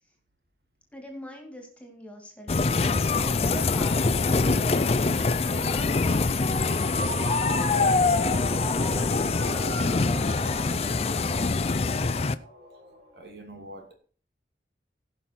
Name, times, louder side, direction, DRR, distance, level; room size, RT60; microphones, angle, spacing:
voice 1, 0.9-4.7 5.5-7.1 7.4-11.6, equal, 10° left, 2.3 m, -43 dB
sound 1, 2.5-12.3, left 3 dB, 35° left, 0.4 m, -24 dB
Ringtone, 5.7-13.2, right 1 dB, 35° right, 4.2 m, -38 dB
voice 2, 13.1-13.9, right 1 dB, 70° right, 2.6 m, -44 dB
17.0 x 5.7 x 4.4 m
head